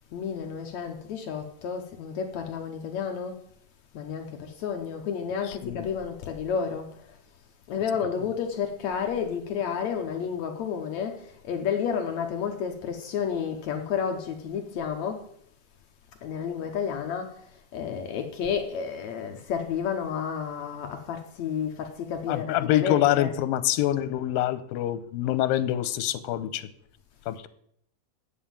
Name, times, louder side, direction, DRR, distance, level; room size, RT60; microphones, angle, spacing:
voice 1, 0.1-3.4 3.9-7.2 7.7-15.2 16.2-23.3, left 7 dB, 65° left, 1.9 m, -31 dB
voice 2, 5.5-5.9 22.3-26.7 27.3-27.5, left 13 dB, 90° left, 2.5 m, -26 dB
8.4 x 7.3 x 8.8 m
omnidirectional pair, 4.0 m